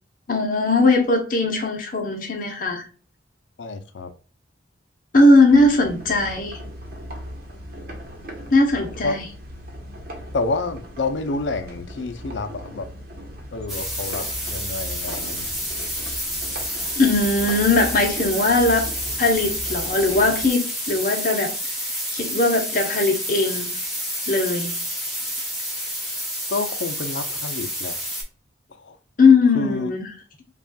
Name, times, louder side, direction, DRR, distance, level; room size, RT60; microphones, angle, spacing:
voice 1, 0.3-2.8 5.1-6.6 8.5-9.2 17.0-18.9 19.2-21.5 22.1-23.7 24.3-24.7 29.2-30.1, left 2 dB, 50° left, 0.8 m, -19 dB
voice 2, 3.6-4.1 9.0-9.2 10.3-12.9 13.5-15.5 26.5-28.0 28.7-29.0 29.5-29.9, left 3 dB, 80° left, 0.5 m, -28 dB
sound 1, 5.5-20.5, equal, 50° right, 1.0 m, -38 dB
sound 2, 13.7-28.2, equal, ahead, 1.5 m, -29 dB
5.4 x 2.4 x 2.2 m
head